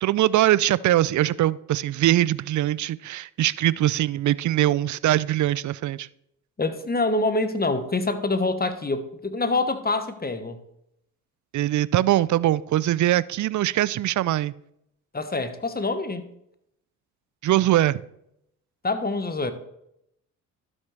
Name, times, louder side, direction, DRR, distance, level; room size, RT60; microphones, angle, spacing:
voice 1, 0.0-6.1 11.5-14.5 17.4-18.0, right 14 dB, 45° right, 20 dB, 0.5 m, -22 dB
voice 2, 6.6-10.6 15.1-16.2 18.8-19.5, left 2 dB, 20° left, 10 dB, 1.2 m, -25 dB
12.5 x 7.3 x 3.3 m, 0.77 s
hypercardioid pair, 45°, 42 cm